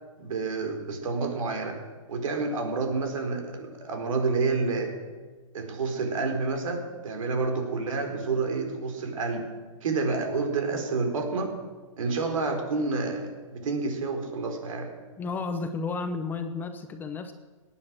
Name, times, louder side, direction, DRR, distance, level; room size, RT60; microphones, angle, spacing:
voice 1, 0.2-1.8 2.1-4.9 5.5-9.4 9.8-11.5 12.0-14.9, right 4 dB, 70° right, 4 dB, 4.5 m, -29 dB
voice 2, 15.2-17.3, left 4 dB, 10° left, 7 dB, 0.7 m, -32 dB
18.5 x 10.0 x 7.6 m, 1.3 s
hypercardioid pair, 160°, 17 cm